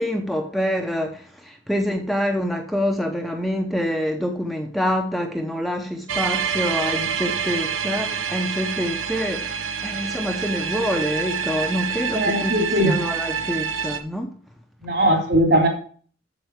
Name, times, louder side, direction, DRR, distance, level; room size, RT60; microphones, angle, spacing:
voice 1, 0.0-14.3, equal, ahead, 0.8 m, -26 dB
sound 1, 6.1-14.0, right 7 dB, 90° right, 1.0 m, -27 dB
voice 2, 12.1-12.9 14.8-15.7, right 1 dB, 55° right, 3.4 m, -19 dB
8.0 x 7.5 x 4.7 m
head